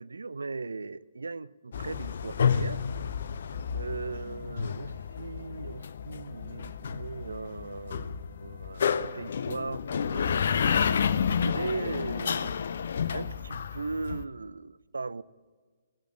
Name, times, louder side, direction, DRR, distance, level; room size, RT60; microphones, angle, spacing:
voice 1, 0.0-2.8 3.7-8.1 8.4-10.4 11.3-15.2, right 4 dB, 65° right, 18 dB, 0.4 m, -38 dB
sound 1, 1.7-14.2, left 7 dB, 50° left, 0.5 m, -30 dB
17.0 x 8.3 x 7.4 m, 1.5 s
figure-of-eight pair, 130°, 0 cm